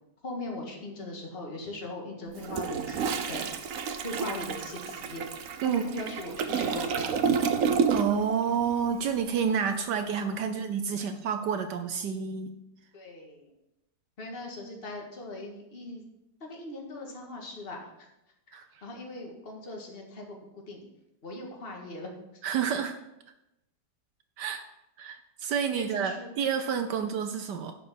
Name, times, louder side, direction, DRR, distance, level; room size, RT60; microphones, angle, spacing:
voice 1, 0.2-3.6 4.0-7.2 10.4-10.7 12.9-13.5 14.2-16.0 16.4-17.9 18.5-20.4 20.7-20.8 21.2-22.1 25.8-26.4 26.9-27.1, left 2 dB, 35° left, 0 dB, 2.0 m, -40 dB
Toilet flush, 2.3-8.3 8.6-8.9, right 6 dB, 55° right, 1.0 m, -29 dB
voice 2, 7.9-12.5 18.5-18.7 22.4-23.0 24.4-24.6 25.0-27.7, right 7 dB, 75° right, 7 dB, 1.3 m, -29 dB
11.0 x 5.3 x 6.9 m, 0.89 s
omnidirectional pair, 1.9 m